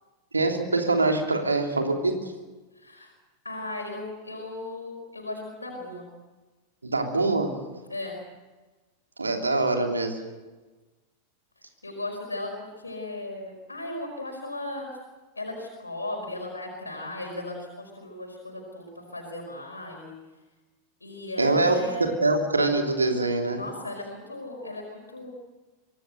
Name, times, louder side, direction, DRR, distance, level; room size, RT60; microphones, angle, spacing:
voice 1, 0.3-2.3 6.8-7.5 9.2-10.2 21.4-23.6, right 2 dB, 80° right, 3 dB, 3.1 m, -24 dB
voice 2, 2.7-3.1 3.4-6.1 7.9-8.2 11.8-14.9 15.4-20.1 21.0-22.1 23.5-25.3, left 2 dB, 80° left, 0 dB, 4.9 m, -36 dB
25.0 x 18.5 x 8.0 m, 1.2 s
figure-of-eight pair, 90°, 0 cm